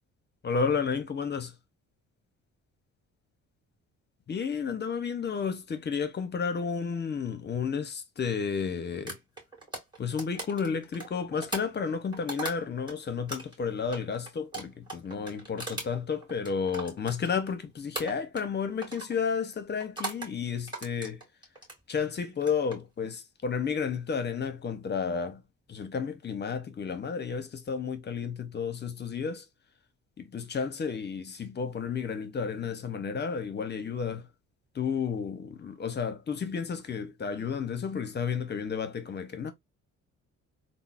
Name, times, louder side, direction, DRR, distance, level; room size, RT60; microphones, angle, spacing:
voice 1, 0.4-1.5 4.3-9.2 10.0-21.2 21.9-25.4 25.7-29.4 30.3-34.3 34.7-39.5, left 6 dB, 35° left, 0.7 m, -32 dB
sound 1, 9.1-12.9 13.3-17.6 17.9-18.5 18.8-19.1 19.8-20.3 20.7-21.8 22.3-22.8, right 2 dB, 15° right, 1.9 m, -39 dB
3.8 x 2.0 x 2.3 m
cardioid pair, 90°, 30 cm